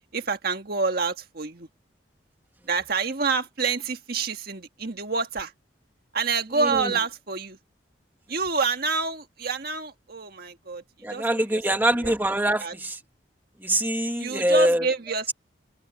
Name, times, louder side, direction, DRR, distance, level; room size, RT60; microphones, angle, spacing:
voice 1, 0.1-1.7 2.7-5.5 6.1-7.6 8.3-10.8 11.1-11.6 12.0-12.1 12.6-12.7 14.2-15.3, right 4 dB, 50° right, 1.6 m, -27 dB
voice 2, 6.6-7.0 11.0-13.0 13.6-14.9, right 1 dB, 10° right, 1.8 m, -24 dB
head